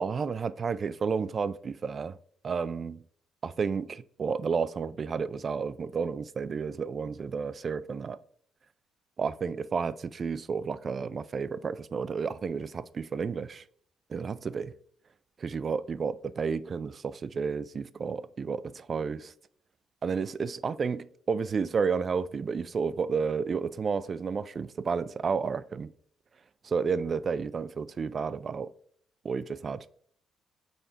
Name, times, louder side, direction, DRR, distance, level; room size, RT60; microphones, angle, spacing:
voice 1, 0.0-2.2 2.4-3.0 3.4-8.2 9.2-13.6 14.1-14.7 15.4-19.3 20.0-25.9 26.6-28.7 29.2-29.9, right 5 dB, 45° right, 0.4 m, -31 dB
5.6 x 4.3 x 4.5 m
cardioid pair, 90°, 0 cm